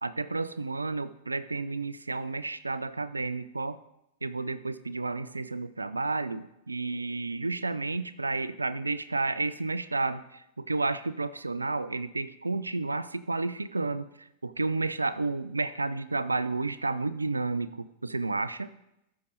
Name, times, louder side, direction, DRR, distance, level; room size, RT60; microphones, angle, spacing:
voice 1, 0.0-3.8 4.2-18.7, right 3 dB, 80° right, 15 dB, 0.4 m, -31 dB
13.5 x 4.9 x 4.0 m, 0.85 s
figure-of-eight pair, 90°, 0 cm